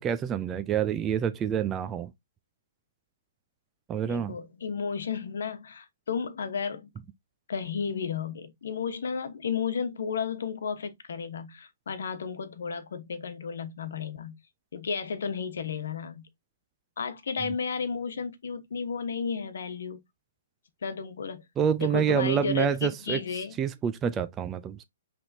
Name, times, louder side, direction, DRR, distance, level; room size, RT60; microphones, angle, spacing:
voice 1, 0.0-2.1 3.9-4.3 21.6-23.2 23.6-24.8, right 8 dB, 15° right, 0.3 m, -27 dB
voice 2, 4.1-6.9 7.5-14.3 14.7-16.3 17.0-20.0 20.8-21.4 21.8-23.6, left 6 dB, 70° left, 1.1 m, -33 dB
5.6 x 3.5 x 2.7 m
hypercardioid pair, 160°, 0 cm